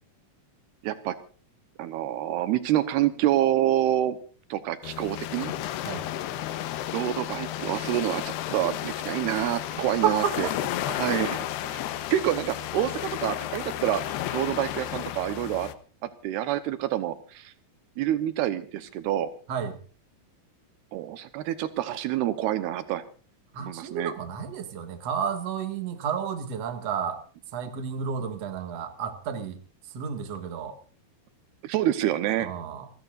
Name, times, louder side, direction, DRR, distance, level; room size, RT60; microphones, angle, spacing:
voice 1, 0.8-1.2 1.8-4.2 4.5-5.5 6.9-10.5 11.0-11.8 12.1-15.7 16.0-17.5 18.0-19.3 20.9-23.0 23.6-24.1 31.6-32.5, right 12 dB, 80° right, 12 dB, 3.1 m, -27 dB
sound 1, 4.8-15.7, left 12 dB, 90° left, 3.1 m, -33 dB
voice 2, 10.0-10.5 10.9-11.0 19.5-19.8 23.5-27.2 27.5-29.6 29.9-30.8 32.4-32.9, right 7 dB, 45° right, 7 dB, 2.6 m, -31 dB
28.5 x 14.0 x 2.5 m, 0.39 s
omnidirectional pair, 4.6 m